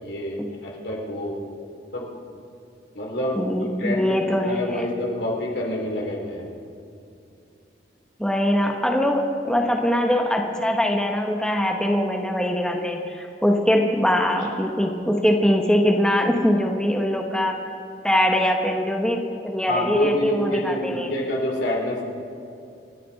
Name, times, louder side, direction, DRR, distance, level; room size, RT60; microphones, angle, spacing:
voice 1, 0.0-0.4 0.6-1.4 1.9-2.0 2.9-6.5 19.7-22.0, left 1 dB, 70° left, -1 dB, 3.2 m, -27 dB
voice 2, 3.3-4.8 8.2-17.6 18.0-21.2, equal, 5° left, 2 dB, 1.1 m, -22 dB
27.0 x 10.5 x 4.1 m, 2.6 s
head